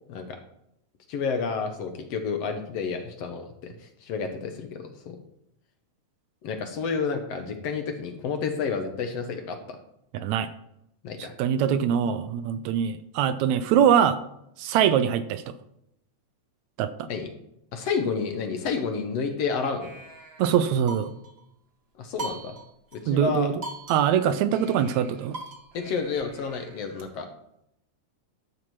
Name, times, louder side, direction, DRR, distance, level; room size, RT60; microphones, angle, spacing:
voice 1, 1.1-5.2 6.4-9.8 11.0-11.3 17.1-17.3 17.7-19.9 22.0-22.6 22.9-23.5 25.7-27.3, left 5 dB, 65° left, 5 dB, 1.9 m, -30 dB
voice 2, 10.1-10.5 11.4-14.2 14.6-15.5 16.8-17.1 20.4-21.1 23.1-23.5 23.9-25.4, right 9 dB, 80° right, 12 dB, 1.8 m, -23 dB
sound 1, 19.8-21.4 22.2-23.0 23.3-23.4 23.6-27.0, right 2 dB, 50° right, 0.7 m, -41 dB
12.0 x 7.3 x 4.7 m, 0.79 s
omnidirectional pair, 3.4 m